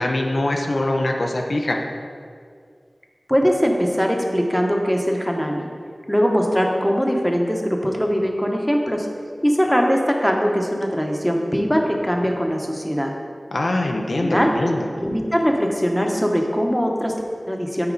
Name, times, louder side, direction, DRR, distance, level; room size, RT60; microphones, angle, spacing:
voice 1, 0.0-1.8 13.5-14.9, left 1 dB, 80° left, 1 dB, 0.6 m, -23 dB
voice 2, 3.3-5.7 6.1-9.1 9.4-13.1 14.2-14.5 15.0-17.9, equal, 5° left, 1 dB, 0.9 m, -21 dB
9.5 x 4.3 x 3.9 m, 2.1 s
wide cardioid pair, 45°, 0 cm